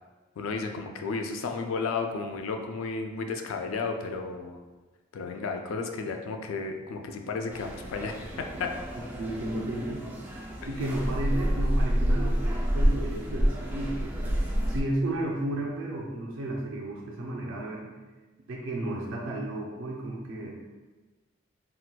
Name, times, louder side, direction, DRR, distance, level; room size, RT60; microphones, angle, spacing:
voice 1, 0.4-4.6 5.1-8.1 8.6-8.7, left 4 dB, 75° left, 4 dB, 0.3 m, -33 dB
sound 1, 7.5-14.8, equal, 10° right, 0.3 m, -28 dB
voice 2, 9.1-10.1 10.7-17.9 18.5-20.6, right 1 dB, 70° right, -2 dB, 0.5 m, -33 dB
4.1 x 2.2 x 2.3 m, 1.2 s
head